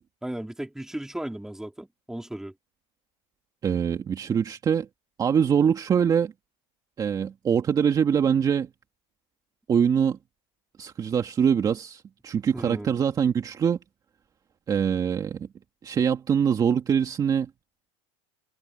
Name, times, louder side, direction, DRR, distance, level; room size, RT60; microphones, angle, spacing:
voice 1, 0.2-2.5 12.5-12.9, right 1 dB, 5° right, 3.6 m, -35 dB
voice 2, 3.6-4.9 5.2-6.3 7.0-8.7 9.7-10.2 10.8-13.8 14.7-15.5 15.8-17.5, right 7 dB, 25° right, 2.1 m, -23 dB
supercardioid pair, 135°, 15 cm